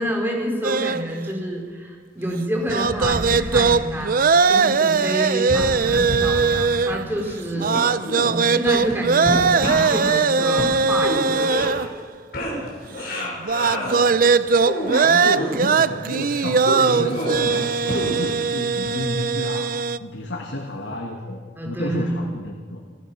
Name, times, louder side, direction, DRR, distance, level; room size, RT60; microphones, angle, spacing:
voice 1, 0.0-4.2 4.4-7.8 8.2-11.9 15.0-15.1 21.6-22.1, right 1 dB, 10° right, 0 dB, 4.4 m, -28 dB
sound 1, 0.6-1.0 2.6-7.2 7.6-11.9 13.4-20.0, right 5 dB, 50° right, 0.6 m, -20 dB
sound 2, 2.7-4.2 5.4-6.8 7.1-12.0 12.3-14.0 14.4-15.6 16.6-18.4 18.9-19.0, equal, 60° left, 6.0 m, -29 dB
voice 2, 13.1-14.6 15.0-22.8, left 1 dB, 85° left, 1 dB, 2.4 m, -32 dB
27.5 x 15.5 x 6.2 m, 1.5 s
head